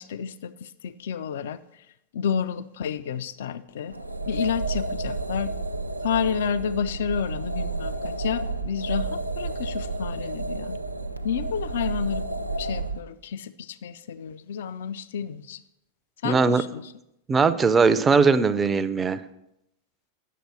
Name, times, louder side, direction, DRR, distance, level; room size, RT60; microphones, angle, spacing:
voice 1, 0.0-1.6 2.1-4.0 4.3-5.5 6.0-10.8 11.2-12.3 12.6-15.6 16.2-16.8, left 7 dB, 60° left, 13 dB, 0.3 m, -30 dB
sound 1, 3.9-13.0, right 3 dB, 85° right, 0.4 m, -31 dB
voice 2, 16.2-16.6 17.3-19.2, right 4 dB, 15° right, 12 dB, 0.5 m, -20 dB
9.2 x 6.6 x 4.6 m, 0.84 s
figure-of-eight pair, 90°, 0 cm